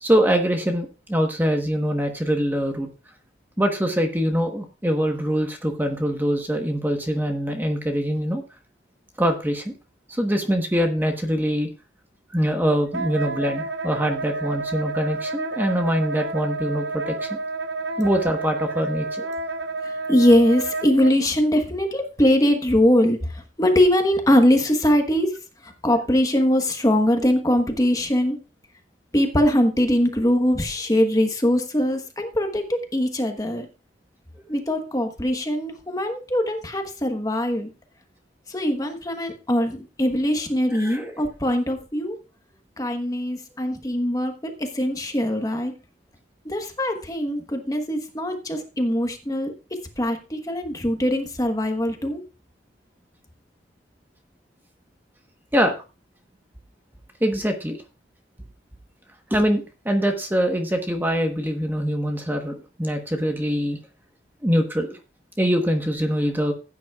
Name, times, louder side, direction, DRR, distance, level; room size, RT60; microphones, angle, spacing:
voice 1, 0.0-2.9 3.6-8.4 9.2-9.7 10.1-11.7 12.3-17.4 18.0-19.3 40.7-41.2 55.5-55.7 57.2-57.8 59.3-63.8 64.4-65.0 65.4-66.5, equal, 10° right, 4 dB, 1.1 m, -23 dB
Wind instrument woodwind instrument, 12.9-21.1, right 3 dB, 75° right, 0.7 m, -30 dB
voice 2, 19.8-25.4 25.6-28.4 29.1-33.7 34.5-37.7 38.5-42.2 42.8-45.7 46.4-52.2, left 1 dB, 20° left, 5 dB, 1.2 m, -22 dB
15.5 x 9.3 x 2.4 m, 0.31 s
head